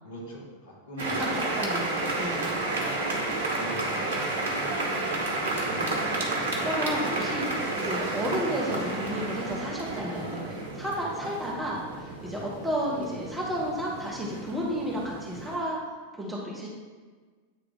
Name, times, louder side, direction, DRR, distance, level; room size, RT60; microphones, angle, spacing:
voice 1, 0.0-1.6 2.1-2.4 2.7-4.3 12.3-12.6, left 1 dB, 60° left, -4 dB, 1.7 m, -42 dB
sound 1, 1.0-15.6, right 2 dB, 60° right, 0.9 m, -31 dB
voice 2, 1.1-2.5 5.5-15.8 16.1-16.7, equal, 5° right, -5 dB, 1.0 m, -33 dB
8.2 x 3.2 x 3.8 m, 1.5 s
figure-of-eight pair, 90°, 0 cm